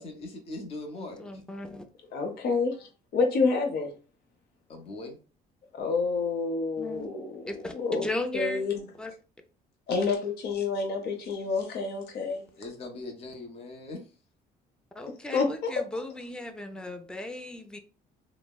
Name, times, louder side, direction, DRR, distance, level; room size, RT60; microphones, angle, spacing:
voice 1, 0.0-1.3 4.7-5.2 12.3-14.1, left 2 dB, 35° left, 0.7 m, -40 dB
voice 2, 1.0-1.8 6.8-7.1 7.5-8.6 9.0-9.1 15.0-17.8, left 2 dB, 5° left, 0.4 m, -36 dB
voice 3, 2.1-2.9 3.1-3.9 5.7-7.4 7.7-8.1 8.3-8.8 9.9-12.5 15.3-15.7, left 4 dB, 70° left, 0.8 m, -28 dB
3.4 x 2.0 x 2.2 m
cardioid pair, 110°, 17 cm